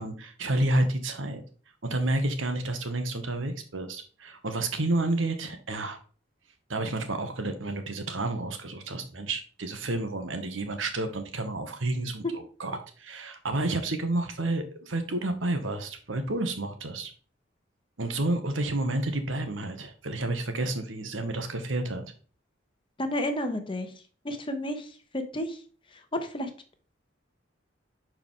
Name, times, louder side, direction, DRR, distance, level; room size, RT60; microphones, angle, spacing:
voice 1, 0.0-1.4 1.8-6.0 6.7-17.1 18.0-22.1, right 2 dB, 80° right, 7 dB, 1.2 m, -30 dB
voice 2, 23.0-23.9 24.2-25.6 26.1-26.5, left 1 dB, 25° left, 6 dB, 0.9 m, -31 dB
6.2 x 4.7 x 3.7 m, 0.40 s
head